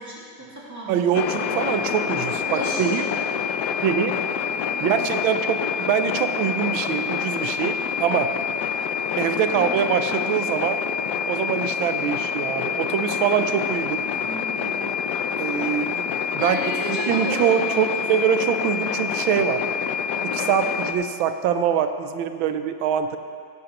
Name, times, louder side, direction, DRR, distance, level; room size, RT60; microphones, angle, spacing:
voice 1, 0.0-1.1 2.5-3.1 4.7-5.1 9.4-9.9 14.0-15.0 16.4-18.0, right 2 dB, 10° right, -6 dB, 1.9 m, -34 dB
voice 2, 0.9-3.0 3.8-4.2 4.8-8.3 9.2-10.8 11.3-14.0 15.4-16.1 16.3-16.6 16.9-19.6 20.2-23.2, right 8 dB, 90° right, 9 dB, 1.4 m, -24 dB
sound 1, 1.1-20.9, left 7 dB, 75° left, 1.0 m, -27 dB
15.5 x 10.5 x 3.0 m, 2.3 s
omnidirectional pair, 2.1 m